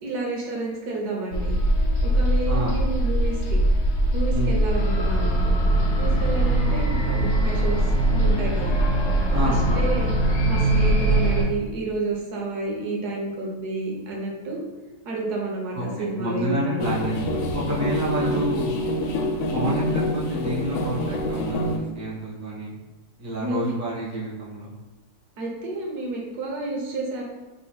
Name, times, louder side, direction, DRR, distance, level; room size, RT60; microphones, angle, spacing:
voice 1, 0.0-1.6 2.0-3.6 4.1-5.6 6.0-7.8 8.1-8.8 9.4-10.1 10.5-14.6 15.0-17.1 18.2-18.5 23.4-23.7 25.4-27.2, right 2 dB, 80° right, -2 dB, 1.4 m, -30 dB
sound 1, 1.3-11.4, right 1 dB, 65° left, 0.7 m, -21 dB
voice 2, 9.3-9.8 15.7-18.7 19.5-22.8 23.2-24.7, equal, 15° right, -7 dB, 0.8 m, -28 dB
sound 2, 16.8-21.8, left 1 dB, 80° left, 1.1 m, -26 dB
4.2 x 3.3 x 2.3 m, 1.1 s
omnidirectional pair, 1.7 m